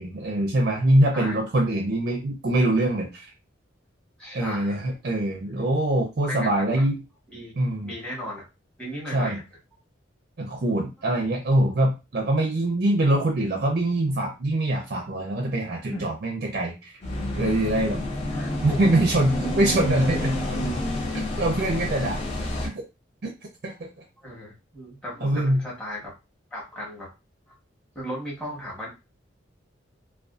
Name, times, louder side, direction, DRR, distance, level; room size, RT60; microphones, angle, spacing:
voice 1, 0.0-3.3 4.3-7.0 7.6-7.9 9.1-9.4 10.4-17.0 17.4-18.0 18.6-20.4 21.4-22.2 22.6-22.8 23.6-23.7 25.2-25.6, right 1 dB, 50° right, 0 dB, 0.5 m, -23 dB
voice 2, 4.2-4.9 6.2-6.8 7.3-8.4 8.8-9.4 15.9-16.1 18.3-18.8 24.2-26.1 26.5-27.1 27.5-27.6 27.9-28.9, left 1 dB, 5° left, -6 dB, 1.0 m, -36 dB
sound 1, 17.0-22.7, left 1 dB, 30° left, 0.5 m, -29 dB
2.5 x 2.3 x 2.3 m, 0.27 s
head